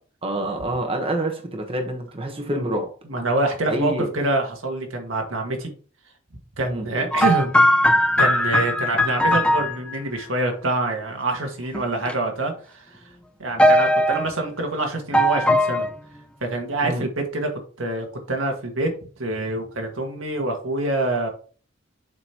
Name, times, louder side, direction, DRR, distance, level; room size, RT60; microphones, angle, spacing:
voice 1, 0.2-2.9 3.7-4.1 6.6-6.9 16.8-17.1, right 1 dB, 30° right, 3 dB, 1.1 m, -27 dB
voice 2, 3.0-5.7 6.6-7.5 8.2-13.0 13.4-15.9 16.4-17.5 17.8-18.9 19.2-21.3, right 2 dB, 85° right, 3 dB, 1.8 m, -26 dB
sound 1, 7.1-10.0 11.7-12.1 13.6-14.3 15.1-15.9, equal, 5° left, 0.5 m, -19 dB
7.0 x 5.3 x 2.9 m, 0.40 s
head